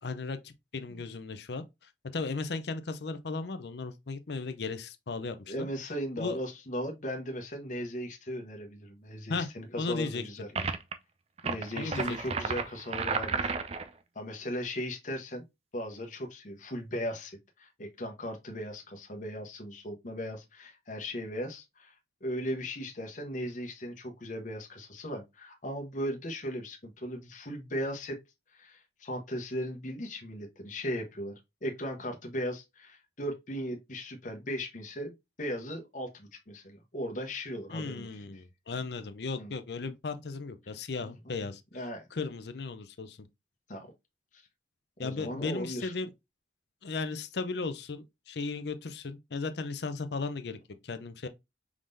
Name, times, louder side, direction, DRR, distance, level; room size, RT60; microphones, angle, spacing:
voice 1, 0.0-5.7 6.2-6.4 9.3-9.5 9.8-10.2 11.7-12.2 37.7-41.6 42.1-43.2 45.0-46.1 46.8-50.6 50.8-51.3, left 4 dB, 65° left, 0.6 m, -36 dB
voice 2, 5.5-10.5 11.4-13.5 14.1-15.4 15.7-21.9 22.2-28.2 28.5-35.1 35.4-38.2 39.4-39.5 39.9-40.0 41.0-41.5 41.7-42.0 43.7-43.9 44.3-44.4 45.0-45.9, equal, 45° left, 1.0 m, -37 dB
sound 1, 10.6-10.9 11.4-13.9, right 5 dB, 35° right, 0.4 m, -32 dB
4.7 x 3.7 x 2.6 m
head